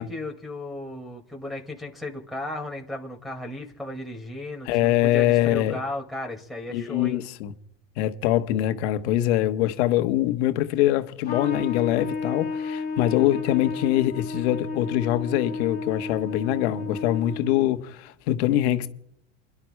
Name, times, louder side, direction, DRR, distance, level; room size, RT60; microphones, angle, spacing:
voice 1, 0.0-4.7 5.0-7.2, left 1 dB, ahead, 2.0 m, -35 dB
voice 2, 4.6-5.8 6.7-7.5 8.0-18.9, left 14 dB, 75° left, 1.2 m, -23 dB
Trumpet, 11.2-17.8, left 4 dB, 30° left, 2.3 m, -32 dB
29.0 x 11.0 x 2.2 m
supercardioid pair, 110°, 33 cm